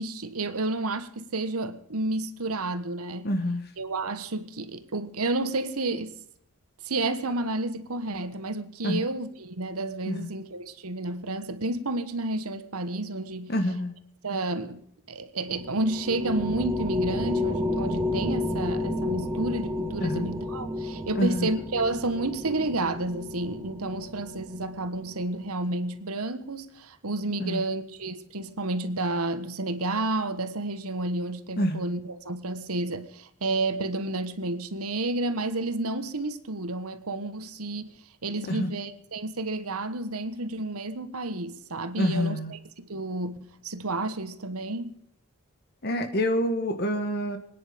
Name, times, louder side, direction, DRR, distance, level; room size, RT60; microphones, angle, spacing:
voice 1, 0.0-3.3 3.8-6.1 6.8-13.5 14.2-37.9 38.2-44.9, right 2 dB, 80° right, 1.4 m, -31 dB
voice 2, 3.2-3.7 8.8-9.0 10.0-10.3 13.5-13.9 20.0-20.2 21.1-21.5 27.4-27.6 31.6-31.8 38.5-38.7 42.0-42.5 45.8-47.4, left 1 dB, 45° left, 1.4 m, -27 dB
sound 1, 15.5-25.2, left 1 dB, 15° right, 1.8 m, -31 dB
24.5 x 10.0 x 5.2 m
head